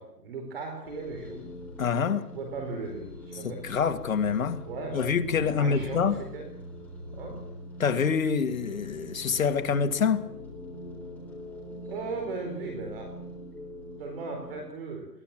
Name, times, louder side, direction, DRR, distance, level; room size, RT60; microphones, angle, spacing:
voice 1, 0.0-1.5 2.3-3.7 4.7-6.5 7.1-7.4 11.6-13.1 14.0-15.1, right 4 dB, 35° right, 4.6 m, -37 dB
sound 1, 0.8-14.6, left 1 dB, 5° left, 4.1 m, -43 dB
voice 2, 1.8-2.3 3.4-4.6 4.9-6.2 7.8-10.3, left 6 dB, 55° left, 2.2 m, -26 dB
22.0 x 18.0 x 7.6 m
hypercardioid pair, 170°, 48 cm